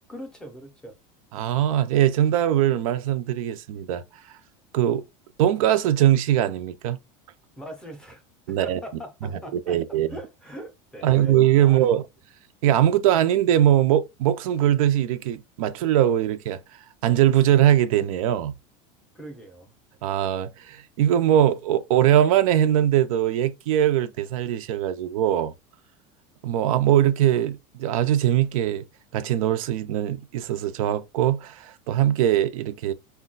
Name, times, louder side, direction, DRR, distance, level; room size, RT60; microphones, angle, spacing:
voice 1, 0.1-1.0 7.6-8.2 8.5-9.8 10.1-11.4 11.6-11.9 19.1-19.7, equal, 5° left, 0.5 m, -40 dB
voice 2, 1.3-4.0 4.7-5.0 5.4-7.0 8.5-8.8 9.5-10.1 11.0-12.0 12.6-16.6 17.0-18.5 20.0-25.5 26.4-28.8 29.1-32.9, right 11 dB, 85° right, 0.5 m, -21 dB
2.2 x 2.2 x 3.8 m
supercardioid pair, 175°, 17 cm